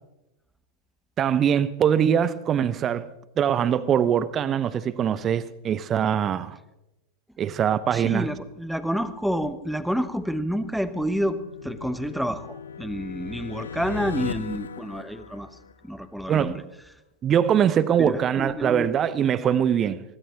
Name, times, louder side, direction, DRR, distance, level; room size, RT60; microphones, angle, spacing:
voice 1, 1.2-3.1 3.4-6.6 7.4-8.3 16.3-16.6 17.2-20.0, right 8 dB, 25° right, 0.9 m, -22 dB
voice 2, 7.9-15.5 15.8-16.6 18.0-18.9, equal, ahead, 1.0 m, -29 dB
sound 1, 10.2-16.0, left 6 dB, 70° left, 0.6 m, -38 dB
24.0 x 17.0 x 2.9 m
figure-of-eight pair, 90°, 0 cm